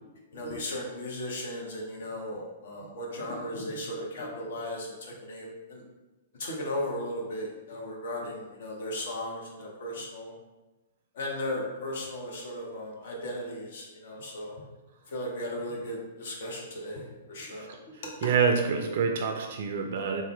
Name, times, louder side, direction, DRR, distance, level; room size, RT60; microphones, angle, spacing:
voice 1, 0.3-5.8 6.4-10.3 11.2-14.6 15.1-17.7, left 1 dB, 55° left, -1 dB, 0.7 m, -36 dB
voice 2, 18.2-20.2, right 5 dB, 55° right, 3 dB, 0.3 m, -27 dB
3.4 x 2.1 x 3.5 m, 1.1 s
figure-of-eight pair, 110°, 0 cm